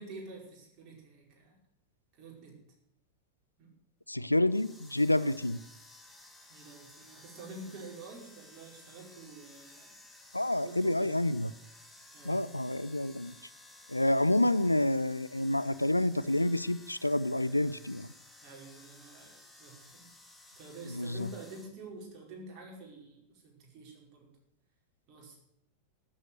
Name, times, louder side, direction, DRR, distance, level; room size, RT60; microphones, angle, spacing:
voice 1, 0.0-1.6 2.1-2.7 3.6-3.7 5.2-5.4 6.5-9.9 10.6-11.2 12.1-12.5 18.4-20.1 20.6-24.3 25.1-25.4, right 2 dB, 35° right, -2 dB, 5.3 m, -48 dB
voice 2, 4.1-5.6 10.3-11.5 12.3-13.3 13.9-18.1 20.9-21.3, left 1 dB, 85° left, 17 dB, 0.4 m, -28 dB
sound 1, 4.5-21.7, left 2 dB, 5° left, 2.0 m, -56 dB
12.5 x 8.0 x 9.4 m, 0.79 s
figure-of-eight pair, 90°, 0 cm